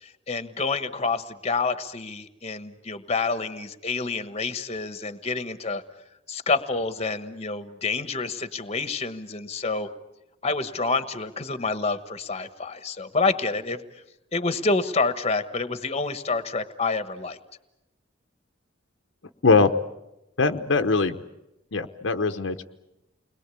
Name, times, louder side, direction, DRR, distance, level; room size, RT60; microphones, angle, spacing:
voice 1, 0.0-5.8 6.3-9.9 10.4-13.8 14.3-17.4, left 3 dB, 30° left, 11 dB, 1.3 m, -28 dB
voice 2, 19.4-19.7 20.4-21.2 21.7-22.6, left 4 dB, 65° left, 7 dB, 1.0 m, -21 dB
29.5 x 21.5 x 8.4 m, 0.92 s
head